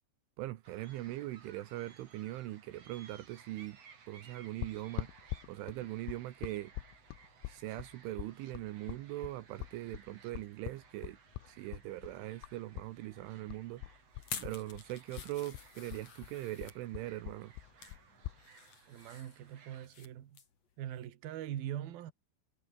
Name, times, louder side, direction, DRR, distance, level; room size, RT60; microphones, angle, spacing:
voice 1, 0.4-3.8 4.1-5.1 5.5-6.7 7.5-11.2 11.5-13.8 14.4-17.5, right 16 dB, 80° right, 3.5 m, -41 dB
sound 1, 0.6-19.9, right 6 dB, 35° right, 3.6 m, -60 dB
sound 2, 4.6-12.9 13.2-14.9 15.2-18.4, left 18 dB, 80° left, 3.5 m, -43 dB
sound 3, 14.2-16.8 17.4-18.0 18.4-20.1 20.3-20.6 21.0-21.1, left 6 dB, 40° left, 3.5 m, -48 dB
voice 2, 18.9-20.4 20.8-22.1, right 11 dB, 60° right, 3.3 m, -42 dB
omnidirectional pair, 5.7 m